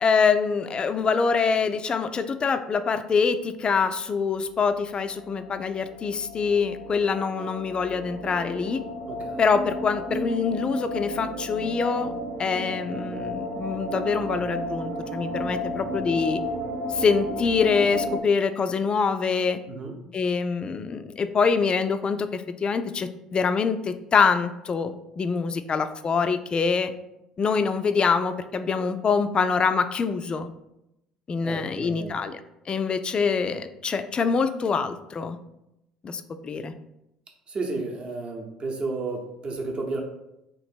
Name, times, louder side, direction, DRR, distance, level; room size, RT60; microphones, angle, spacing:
voice 1, 0.0-8.8 9.4-12.1 12.4-16.4 16.9-19.6 20.1-26.9 27.4-30.5 31.3-32.4 32.7-35.4 36.0-36.7, left 5 dB, 30° left, 10 dB, 0.3 m, -25 dB
sound 1, 5.0-18.2, equal, 60° right, 0.5 m, -33 dB
voice 2, 9.1-9.4 19.7-20.0 31.4-32.2 37.5-40.0, right 3 dB, 35° right, 1 dB, 0.8 m, -32 dB
3.0 x 2.5 x 4.4 m, 0.86 s
hypercardioid pair, 60°, 3 cm